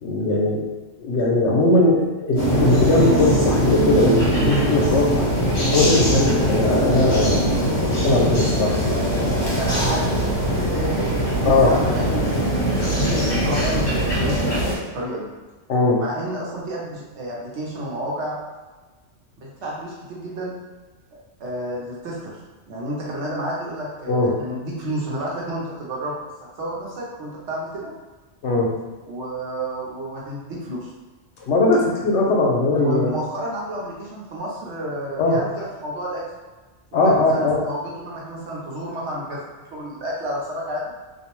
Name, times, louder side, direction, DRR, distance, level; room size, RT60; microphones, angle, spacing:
voice 1, 0.0-0.6 1.0-5.3 5.7-9.0 11.5-11.8 15.7-16.0 24.1-24.3 28.4-28.7 31.4-33.1 35.2-35.4 36.9-37.6, left 2 dB, 80° left, -1 dB, 0.9 m, -19 dB
sound 1, 2.4-14.8, equal, 45° left, 0.9 m, -21 dB
voice 2, 9.3-13.8 14.1-14.6 14.9-15.3 16.0-18.4 19.4-20.5 21.4-22.3 22.7-26.2 26.6-27.9 29.1-30.9 32.8-36.2 36.9-40.9, right 1 dB, 75° right, -4 dB, 1.0 m, -30 dB
2.6 x 2.0 x 2.9 m, 1.3 s
omnidirectional pair, 1.2 m